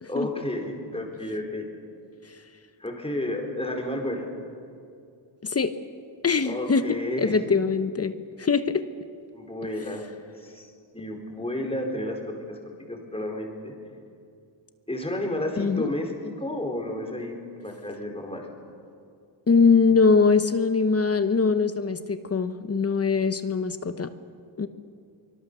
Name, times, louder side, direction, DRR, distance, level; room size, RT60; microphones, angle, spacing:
voice 1, 0.1-1.7 2.8-4.3 6.4-7.4 9.3-13.7 14.9-18.5, left 1 dB, 10° left, 1 dB, 4.4 m, -32 dB
voice 2, 6.2-8.1 8.4-8.8 15.6-15.9 19.5-24.1 24.6-24.7, left 5 dB, 30° left, 11 dB, 1.0 m, -22 dB
24.0 x 22.5 x 6.9 m, 2.4 s
cardioid pair, 110°, 49 cm